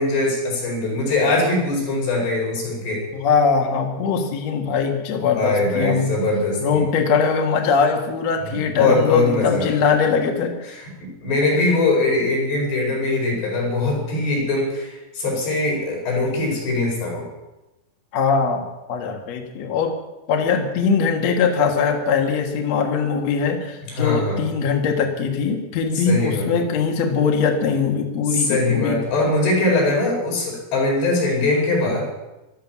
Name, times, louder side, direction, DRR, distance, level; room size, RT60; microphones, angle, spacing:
voice 1, 0.0-3.1 5.1-6.8 8.5-9.7 10.7-17.3 23.9-24.4 25.9-26.5 28.3-32.1, left 2 dB, 80° left, -1 dB, 7.3 m, -22 dB
voice 2, 3.1-6.2 6.6-10.7 18.1-19.9 20.3-29.0, left 5 dB, 50° left, 3 dB, 2.2 m, -21 dB
14.5 x 12.5 x 7.4 m, 1.0 s
omnidirectional pair, 4.8 m